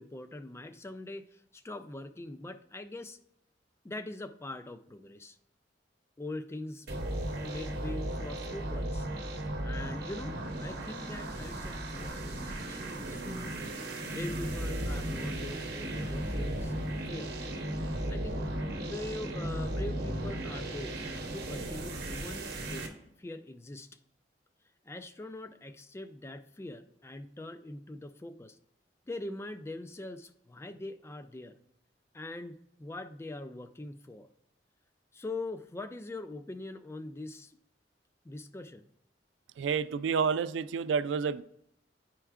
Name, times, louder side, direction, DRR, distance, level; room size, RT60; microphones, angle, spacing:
voice 1, 0.0-3.2 3.8-5.4 6.2-6.9 7.4-9.1 9.6-16.7 17.1-17.4 18.1-21.1 21.3-23.9 24.8-28.6 29.1-31.6 32.1-34.3 35.1-37.6 38.2-38.9, left 2 dB, 15° left, 10 dB, 0.3 m, -42 dB
sound 1, 6.9-22.9, right 1 dB, 60° right, 0.9 m, -36 dB
voice 2, 39.6-41.4, right 6 dB, 85° right, 15 dB, 0.3 m, -29 dB
9.9 x 4.5 x 2.4 m, 0.76 s
head